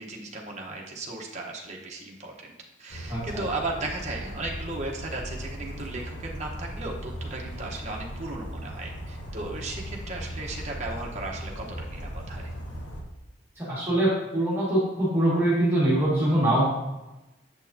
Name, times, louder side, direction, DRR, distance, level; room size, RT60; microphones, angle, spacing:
voice 1, 0.0-2.5 2.8-12.5, right 2 dB, 35° right, -1 dB, 1.0 m, -36 dB
Bird vocalization bird call bird song, 2.9-13.0, equal, 65° left, 1.1 m, -38 dB
voice 2, 3.1-3.5 13.6-16.7, right 1 dB, 10° right, -8 dB, 1.9 m, -23 dB
7.5 x 6.4 x 2.7 m, 1.0 s
head